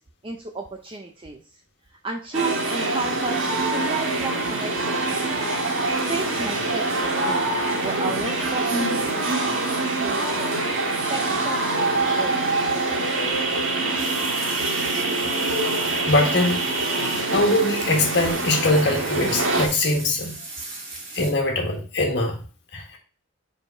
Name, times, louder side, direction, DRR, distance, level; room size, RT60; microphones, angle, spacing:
voice 1, 0.2-1.4 2.0-5.0 6.0-7.5 7.8-9.2 10.0-10.6 11.1-11.6 11.9-12.3, right 3 dB, 25° right, 3 dB, 0.5 m, -32 dB
sound 1, 2.3-19.7, right 2 dB, 85° right, 1.7 m, -24 dB
sound 2, 14.0-21.3, right 2 dB, 40° right, 2.4 m, -37 dB
voice 2, 16.1-16.6 17.3-20.3 21.1-22.4 22.7-23.0, left 2 dB, 55° left, 1 dB, 1.5 m, -22 dB
5.0 x 4.8 x 4.3 m, 0.38 s
head